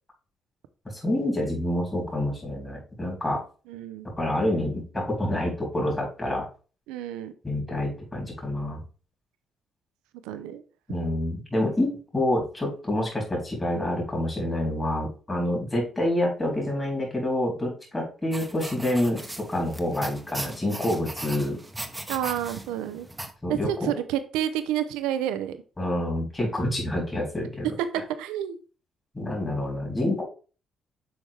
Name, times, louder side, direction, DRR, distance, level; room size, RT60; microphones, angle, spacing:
voice 1, 0.9-3.4 4.2-6.4 7.4-8.8 10.9-21.6 23.4-23.9 25.8-27.7 29.1-30.2, left 1 dB, 25° left, -1 dB, 3.5 m, -27 dB
voice 2, 3.7-4.1 6.9-7.4 10.2-10.6 22.1-23.1 23.5-25.6 27.9-28.6, right 11 dB, 80° right, 11 dB, 0.6 m, -29 dB
sound 1, 18.3-23.3, right 1 dB, 10° right, 1.0 m, -38 dB
7.2 x 4.4 x 3.4 m, 0.36 s
hypercardioid pair, 45°, 0 cm